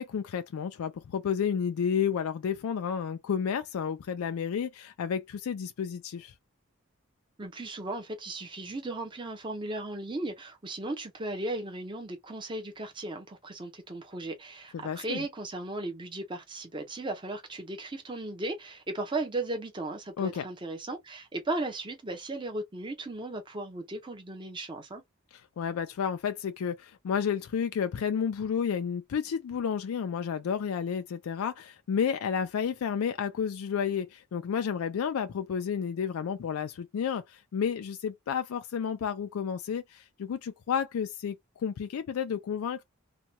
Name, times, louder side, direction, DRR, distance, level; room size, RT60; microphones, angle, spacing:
voice 1, 0.0-6.3 14.7-15.3 20.2-20.4 25.6-42.8, left 7 dB, 80° left, 0.3 m, -31 dB
voice 2, 7.4-25.0, right 2 dB, 20° right, 0.6 m, -36 dB
2.9 x 2.2 x 2.8 m
head